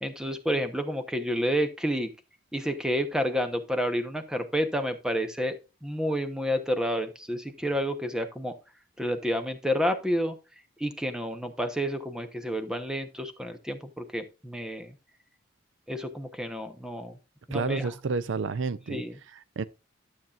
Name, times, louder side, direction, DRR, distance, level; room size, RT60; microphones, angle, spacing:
voice 1, 0.0-2.1 2.5-8.5 9.0-10.3 10.8-14.9 15.9-17.1 17.5-17.9 18.9-19.1, equal, 5° right, 0.9 m, -30 dB
voice 2, 17.5-19.6, right 4 dB, 60° right, 0.4 m, -31 dB
12.0 x 7.3 x 2.5 m
head